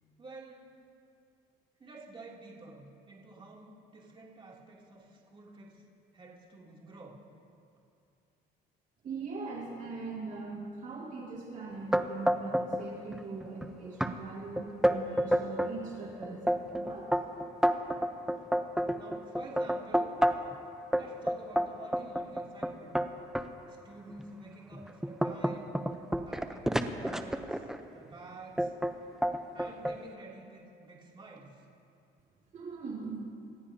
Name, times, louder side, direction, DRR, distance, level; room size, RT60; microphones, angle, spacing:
voice 1, 0.2-0.6 1.8-5.8 6.1-7.2 18.3-18.7 19.0-20.1 20.9-23.0 23.7-25.8 26.3-28.7 29.5-31.7, right 2 dB, 30° right, -3 dB, 2.9 m, -50 dB
voice 2, 9.0-17.1 32.5-33.2, right 4 dB, 50° right, -4 dB, 2.4 m, -41 dB
sound 1, 11.9-12.8 13.1-13.6 14.0-14.1 14.6-15.7 16.2-20.5 20.9-23.5 24.1-24.2 24.7-27.8 28.6-28.9 29.2-30.0, equal, 5° right, 0.7 m, -29 dB
27.5 x 15.0 x 2.8 m, 2.5 s
cardioid pair, 110°, 17 cm